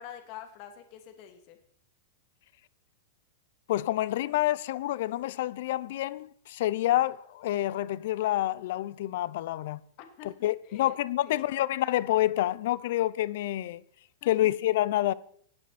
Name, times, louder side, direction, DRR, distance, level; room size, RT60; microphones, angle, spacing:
voice 1, 0.0-1.6 10.0-10.3 10.7-10.9 11.2-11.4 14.2-14.3, left 10 dB, 40° left, 2.6 m, -46 dB
voice 2, 3.7-9.8 10.2-13.8 14.2-15.1, left 14 dB, 55° left, 0.7 m, -28 dB
17.5 x 16.5 x 4.3 m
supercardioid pair, 160°, 0 cm